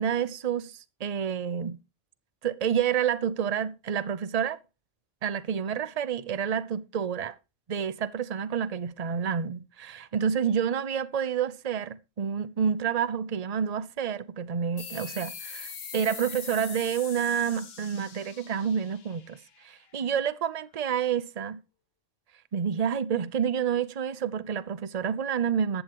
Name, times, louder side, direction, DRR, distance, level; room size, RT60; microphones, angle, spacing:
voice 1, 0.0-1.8 2.4-4.6 5.2-7.4 7.7-21.6 22.5-25.8, right 8 dB, 40° right, 0.7 m, -29 dB
sound 1, 14.8-19.9, left 6 dB, 55° left, 1.3 m, -42 dB
14.5 x 11.5 x 3.0 m
omnidirectional pair, 1.3 m